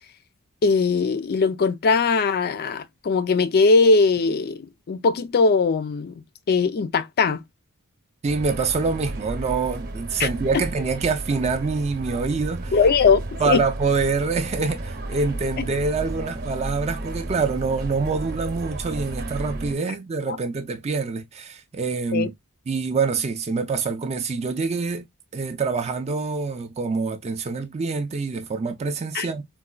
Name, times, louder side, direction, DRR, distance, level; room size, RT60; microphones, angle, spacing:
voice 1, 0.6-7.4 10.2-10.3 10.5-10.6 12.7-13.6 20.3-20.4 22.1-22.3 29.1-29.3, left 4 dB, 45° left, 0.4 m, -20 dB
voice 2, 8.2-12.7 13.4-22.3 22.7-25.1 25.3-29.5, right 4 dB, 30° right, 0.3 m, -25 dB
sound 1, 8.3-19.7, right 2 dB, 45° right, 0.8 m, -33 dB
3.9 x 2.2 x 2.2 m
head